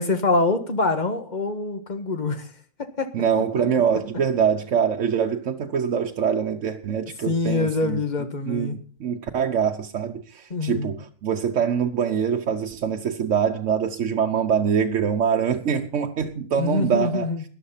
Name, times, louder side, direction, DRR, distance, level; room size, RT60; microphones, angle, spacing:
voice 1, 0.0-2.5 2.8-3.1 7.3-8.8 10.5-10.9 16.6-17.4, left 3 dB, 40° left, 1.7 m, -25 dB
voice 2, 3.1-8.0 8.5-17.3, right 7 dB, 80° right, 1.2 m, -24 dB
13.5 x 10.5 x 5.7 m
omnidirectional pair, 1.2 m